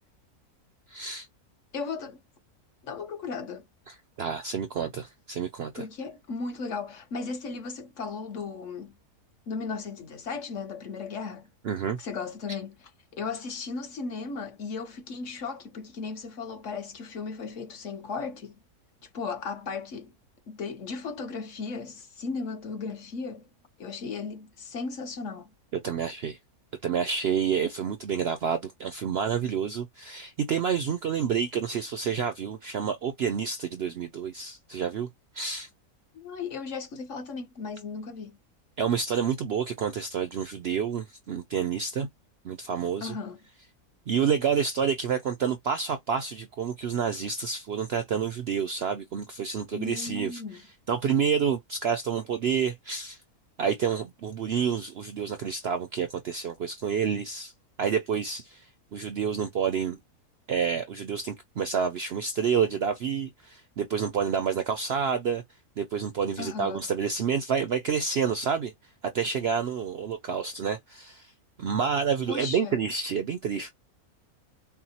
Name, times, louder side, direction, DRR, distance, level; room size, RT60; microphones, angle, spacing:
voice 1, 0.9-1.3 3.9-5.8 11.6-12.0 25.8-26.4 26.8-35.1 35.3-35.7 38.8-42.1 42.4-43.1 44.1-50.6 50.9-53.2 53.6-57.5 57.8-60.0 60.5-65.4 65.8-68.7 69.1-71.3 71.6-73.7, right 7 dB, 65° right, 0.6 m, -29 dB
voice 2, 1.7-2.2 2.8-3.6 5.7-8.9 9.5-11.5 12.0-18.6 19.0-20.1 20.5-23.5 23.8-25.5 36.1-38.4 43.0-43.4 49.7-50.6 66.4-66.8 72.3-72.8, left 4 dB, 55° left, 1.2 m, -36 dB
5.8 x 2.1 x 2.8 m
omnidirectional pair, 1.6 m